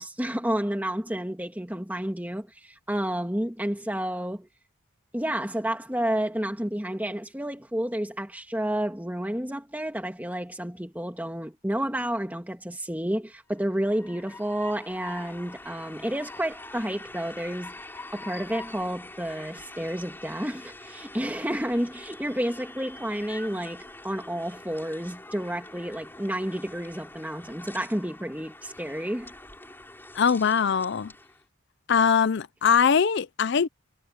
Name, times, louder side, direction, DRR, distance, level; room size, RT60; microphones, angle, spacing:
voice 1, 0.0-4.5 5.1-17.8 18.1-29.3, right 1 dB, 5° right, 2.4 m, -30 dB
Train, 13.5-31.3, left 2 dB, 10° left, 6.9 m, -45 dB
voice 2, 30.1-31.1 31.9-33.7, left 6 dB, 50° left, 0.4 m, -22 dB
head